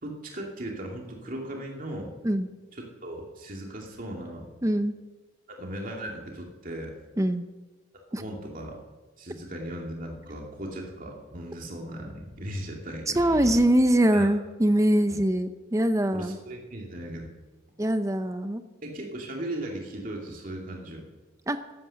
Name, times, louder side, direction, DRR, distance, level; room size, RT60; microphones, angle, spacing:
voice 1, 0.0-2.1 2.8-4.5 5.5-6.9 8.1-8.8 9.2-13.2 14.1-14.3 15.1-15.2 16.1-17.3 18.8-21.1, right 1 dB, 45° right, 0 dB, 2.5 m, -37 dB
voice 2, 4.6-4.9 7.2-7.5 8.1-8.2 13.1-16.4 17.8-18.6 21.5-21.6, right 1 dB, 15° right, 10 dB, 0.7 m, -23 dB
sound 1, 10.1-10.5 10.8-10.9 13.1-13.7, right 1 dB, 90° right, 5.0 m, -40 dB
14.0 x 9.7 x 6.4 m, 1.2 s
head